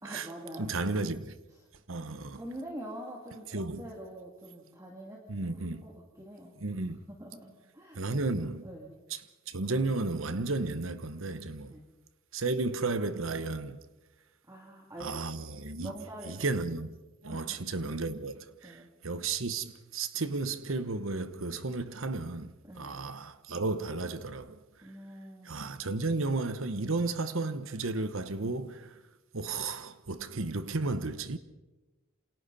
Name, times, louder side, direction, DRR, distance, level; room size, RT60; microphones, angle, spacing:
voice 1, 0.0-0.7 2.1-5.2 5.6-5.9 6.2-6.5 7.1-8.2 8.6-8.9 11.7-11.9 14.5-15.3 15.8-16.3 17.3-17.6 18.6-18.9 22.7-23.0 24.8-25.6, equal, 15° right, 2.8 m, -45 dB
voice 2, 0.6-1.3 1.9-2.4 3.5-3.8 5.3-5.8 6.6-7.0 7.9-8.6 9.1-9.2 9.5-11.8 12.3-13.8 15.0-15.9 16.3-16.9 17.2-24.6 25.4-29.0 29.3-31.4, right 3 dB, 70° right, 1.1 m, -33 dB
28.5 x 27.0 x 4.2 m
head